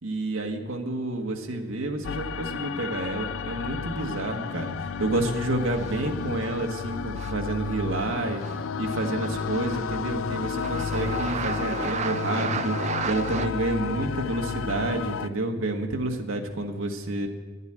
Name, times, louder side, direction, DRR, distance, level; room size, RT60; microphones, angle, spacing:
voice 1, 0.0-8.4 8.8-17.3, right 2 dB, 80° right, 2 dB, 1.5 m, -29 dB
sound 1, 2.0-15.3, left 6 dB, 75° left, 0.4 m, -32 dB
sound 2, 5.7-6.2 7.1-7.4 8.4-8.6 8.8-10.0 10.3-13.5, right 7 dB, 35° right, 0.3 m, -34 dB
11.5 x 8.2 x 9.9 m, 1.3 s
head